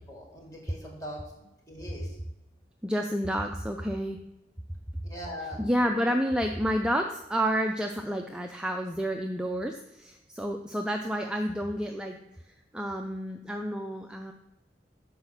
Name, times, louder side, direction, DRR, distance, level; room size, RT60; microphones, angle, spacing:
voice 1, 0.1-2.1 5.0-6.1, left 1 dB, 20° left, -2 dB, 1.7 m, -42 dB
voice 2, 2.8-4.2 5.6-12.2 12.7-14.3, equal, 5° right, 3 dB, 0.3 m, -29 dB
6.1 x 4.8 x 5.6 m, 0.92 s
head